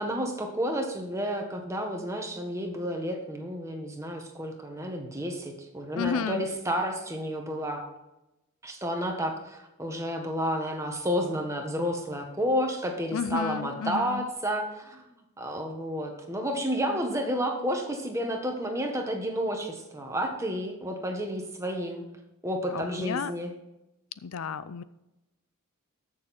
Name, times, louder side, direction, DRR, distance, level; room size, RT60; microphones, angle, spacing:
voice 1, 0.0-7.8 8.6-15.0 15.4-22.0 22.4-23.5, equal, 15° right, 3 dB, 1.5 m, -31 dB
voice 2, 5.9-6.5 13.1-14.3 22.7-23.3 24.2-24.8, left 6 dB, 80° left, 15 dB, 0.5 m, -32 dB
14.0 x 6.7 x 4.3 m, 0.94 s
head